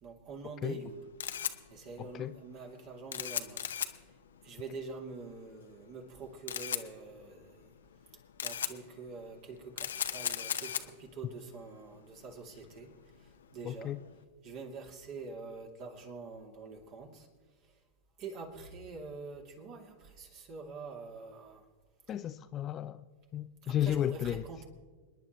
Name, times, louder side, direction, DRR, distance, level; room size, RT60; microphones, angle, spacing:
voice 1, 0.0-1.0 1.7-3.7 4.4-7.7 8.4-12.9 13.2-13.9 14.4-17.3 18.2-21.6 23.6-24.7, right 4 dB, 45° right, 2.7 m, -45 dB
Camera, 0.8-14.2, left 9 dB, 75° left, 0.7 m, -40 dB
voice 2, 2.0-2.4 13.6-14.0 22.1-23.0 23.3-24.4, left 11 dB, 30° left, 0.5 m, -33 dB
28.0 x 10.0 x 3.1 m
hypercardioid pair, 100°, 0 cm